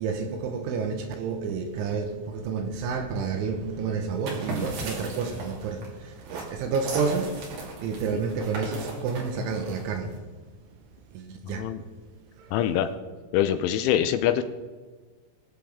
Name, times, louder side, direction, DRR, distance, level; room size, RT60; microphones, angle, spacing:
voice 1, 0.0-10.2 11.1-11.7 12.4-12.6, right 5 dB, 80° right, 3.1 m, -30 dB
sound 1, 4.1-10.2, right 2 dB, 55° right, 3.6 m, -37 dB
voice 2, 12.5-12.9 13.3-14.4, left 11 dB, 85° left, 2.9 m, -24 dB
22.5 x 7.5 x 3.6 m
omnidirectional pair, 5.9 m